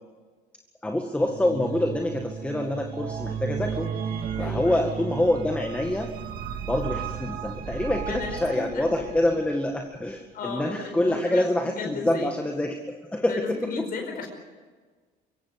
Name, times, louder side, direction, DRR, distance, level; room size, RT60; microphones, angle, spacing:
voice 1, 0.8-3.9 4.4-6.1 6.7-13.3 13.8-13.9, left 1 dB, 10° left, 3 dB, 1.9 m, -26 dB
sound 1, 1.2-9.5, right 7 dB, 60° right, 2.4 m, -34 dB
voice 2, 4.4-5.0 8.0-9.2 10.3-12.3 13.3-14.3, left 4 dB, 60° left, 3 dB, 4.9 m, -35 dB
24.5 x 16.0 x 8.1 m, 1.4 s
cardioid pair, 110°, 17 cm